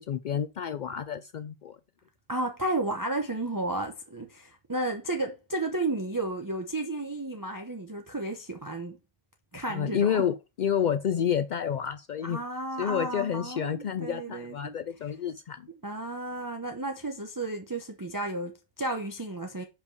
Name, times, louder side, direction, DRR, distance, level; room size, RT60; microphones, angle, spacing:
voice 1, 0.0-1.8 9.7-12.4 12.8-15.7, left 8 dB, 75° left, 0.4 m, -29 dB
voice 2, 2.3-9.0 9.5-10.2 12.2-14.8 15.8-19.6, right 2 dB, 15° right, 0.9 m, -33 dB
5.4 x 5.2 x 6.5 m
omnidirectional pair, 1.3 m